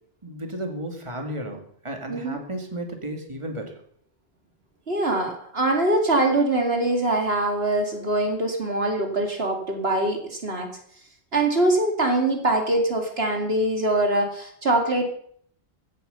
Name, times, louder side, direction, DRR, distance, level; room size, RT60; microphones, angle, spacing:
voice 1, 0.2-3.8, right 1 dB, 30° right, 3 dB, 2.5 m, -33 dB
voice 2, 2.1-2.4 4.9-10.7 11.3-15.0, right 2 dB, 70° right, 3 dB, 2.7 m, -23 dB
15.5 x 9.8 x 6.9 m, 0.62 s
omnidirectional pair, 1.1 m